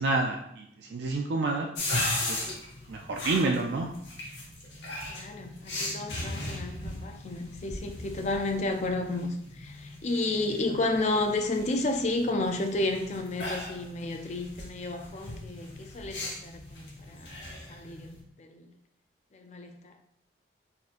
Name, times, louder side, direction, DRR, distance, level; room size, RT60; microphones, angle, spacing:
voice 1, 0.0-1.7 2.3-2.5 2.9-3.9, right 3 dB, 65° right, 0.4 m, -29 dB
sound 1, 1.7-18.2, left 2 dB, 75° left, 1.0 m, -38 dB
voice 2, 5.1-17.3 17.7-18.7 19.3-19.9, left 2 dB, 40° left, 0.4 m, -32 dB
4.2 x 3.7 x 2.5 m
head